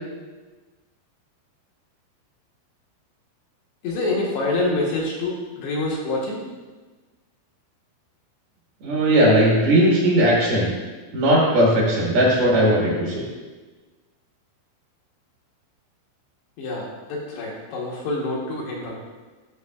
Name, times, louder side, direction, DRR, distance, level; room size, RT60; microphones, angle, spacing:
voice 1, 3.8-6.4 16.6-19.0, left 2 dB, 75° left, -3 dB, 2.5 m, -26 dB
voice 2, 8.8-10.7 11.1-13.2, right 1 dB, 60° right, -5 dB, 2.9 m, -18 dB
13.5 x 6.3 x 2.3 m, 1.3 s
omnidirectional pair, 6.0 m